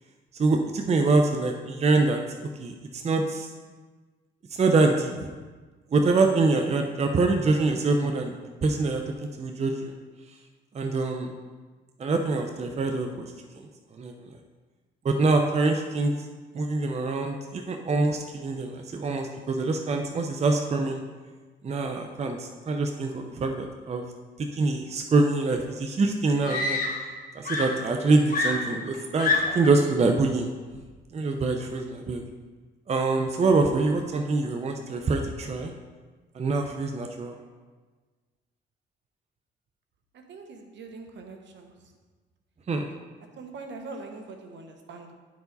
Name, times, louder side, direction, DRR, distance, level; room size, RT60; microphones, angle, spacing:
voice 1, 0.3-2.2 2.6-3.5 4.5-5.3 5.9-8.3 8.6-9.0 9.4-9.9 10.7-11.3 12.0-13.7 13.9-14.1 15.0-16.1 16.5-21.0 21.6-24.0 24.4-26.8 27.3-30.5 31.1-32.2 32.9-35.7 36.3-37.4 42.7-42.9, right 3 dB, 35° right, 4 dB, 0.6 m, -25 dB
Screaming, 25.6-25.7 26.4-27.2 27.5-29.8 30.7-31.0, left 3 dB, 45° left, 1.5 m, -28 dB
voice 2, 40.1-41.7 43.4-45.2, right 3 dB, 65° right, 4 dB, 1.1 m, -42 dB
9.8 x 4.7 x 4.0 m, 1.4 s
cardioid pair, 90°, 20 cm